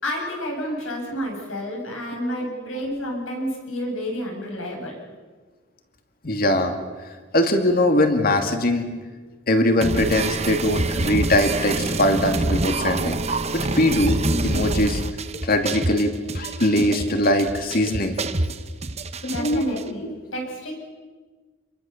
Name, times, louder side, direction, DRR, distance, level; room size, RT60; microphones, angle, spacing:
voice 1, 0.0-5.0 19.3-20.1 20.3-20.7, equal, 80° left, 0 dB, 8.0 m, -29 dB
voice 2, 6.2-6.7 7.3-8.9 9.5-13.2 13.5-15.0 15.4-18.1 19.2-19.7, left 1 dB, 45° left, 5 dB, 2.4 m, -21 dB
sound 1, 9.8-19.8, right 2 dB, 30° right, 1.0 m, -26 dB
27.5 x 22.5 x 7.2 m, 1.4 s
head